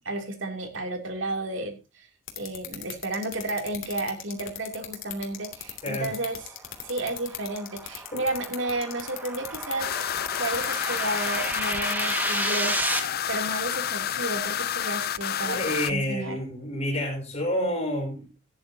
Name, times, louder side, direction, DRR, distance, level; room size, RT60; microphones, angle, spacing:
voice 1, 0.0-2.1 2.4-9.9 10.4-16.4, right 2 dB, 70° right, 5 dB, 3.0 m, -32 dB
sound 1, 2.3-12.1, left 12 dB, 80° left, 2.8 m, -36 dB
voice 2, 5.8-6.2 8.1-8.2 15.4-18.3, left 1 dB, 30° left, -6 dB, 5.3 m, -29 dB
sound 2, 6.1-13.0, right 1 dB, 10° right, 1.8 m, -32 dB
sound 3, 9.8-15.9, left 10 dB, 50° left, 0.6 m, -29 dB
16.5 x 10.5 x 2.8 m, 0.28 s
head